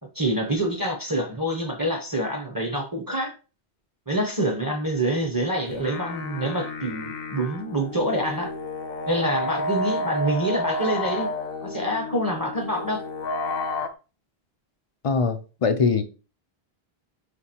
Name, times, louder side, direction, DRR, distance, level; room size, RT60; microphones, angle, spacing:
voice 1, 0.1-3.3 4.1-8.5 9.1-11.3 11.6-13.0, right 1 dB, 25° right, 0.6 m, -26 dB
sound 1, 5.6-13.9, left 2 dB, 70° left, 0.8 m, -31 dB
voice 2, 15.0-16.0, left 5 dB, 55° left, 0.4 m, -22 dB
4.7 x 3.3 x 2.8 m
omnidirectional pair, 1.0 m